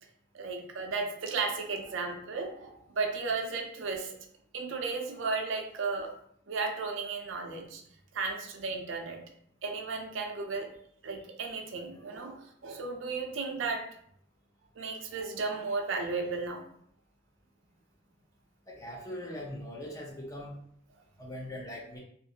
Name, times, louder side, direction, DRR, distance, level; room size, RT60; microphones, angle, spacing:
voice 1, 0.3-4.2 4.5-6.1 6.5-7.8 8.1-9.2 9.6-10.7 11.0-13.9 14.8-16.6, right 4 dB, 70° right, 3 dB, 0.5 m, -34 dB
voice 2, 18.7-20.6 21.2-22.0, left 1 dB, 15° left, -3 dB, 0.6 m, -41 dB
2.5 x 2.4 x 2.7 m, 0.66 s
head